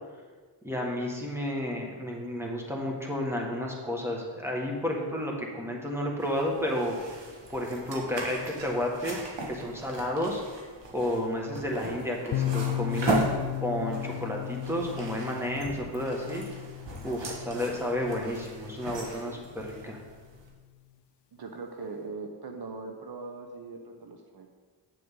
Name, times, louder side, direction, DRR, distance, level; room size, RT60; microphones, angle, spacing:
voice 1, 0.6-6.9 7.5-10.4 10.9-13.2 13.6-16.4 17.0-20.0, left 1 dB, 5° right, -1 dB, 1.7 m, -31 dB
sound 1, 6.2-20.5, right 2 dB, 75° right, 1.6 m, -37 dB
sound 2, 12.3-20.0, left 12 dB, 70° left, 0.5 m, -36 dB
voice 2, 21.3-24.5, right 3 dB, 60° right, 3 dB, 0.8 m, -40 dB
7.8 x 7.7 x 3.8 m, 1.5 s
cardioid pair, 75°, 44 cm